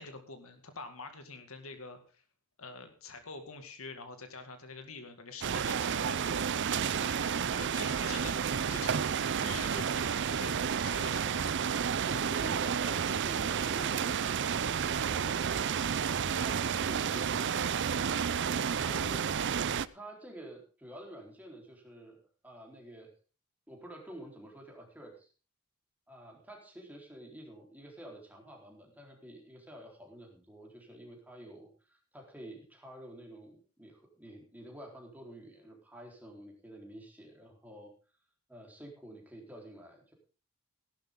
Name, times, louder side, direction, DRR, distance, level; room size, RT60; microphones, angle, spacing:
voice 1, 0.0-2.2 2.6-11.5, left 4 dB, 70° left, 7 dB, 2.2 m, -46 dB
sound 1, 5.4-19.9, right 7 dB, 55° right, 0.5 m, -31 dB
voice 2, 12.1-16.1 18.5-19.2 19.9-23.1 23.7-25.3 26.1-37.9 38.5-40.1, right 1 dB, 5° right, 0 dB, 4.1 m, -49 dB
16.0 x 12.0 x 3.8 m, 0.36 s
head